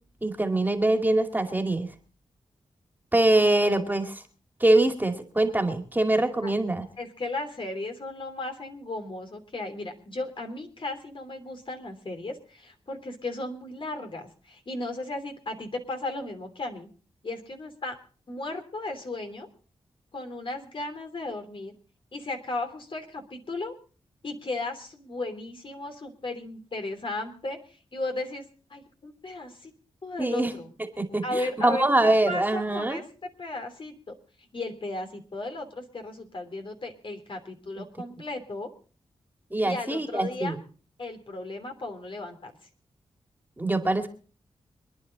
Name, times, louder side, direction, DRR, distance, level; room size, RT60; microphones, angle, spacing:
voice 1, 0.2-1.9 3.1-4.2 4.6-6.9 30.2-30.5 31.0-33.0 39.5-40.6 43.6-44.1, right 2 dB, 15° right, 5 dB, 2.4 m, -24 dB
voice 2, 7.0-16.9 17.2-18.0 18.3-19.5 20.1-21.7 22.1-23.7 24.2-28.4 28.7-29.7 30.0-30.7 31.2-33.0 33.4-38.7 39.6-40.5 41.0-42.5, left 2 dB, 50° left, 5 dB, 3.2 m, -35 dB
25.5 x 10.5 x 4.1 m, 0.40 s
cardioid pair, 65°, 11 cm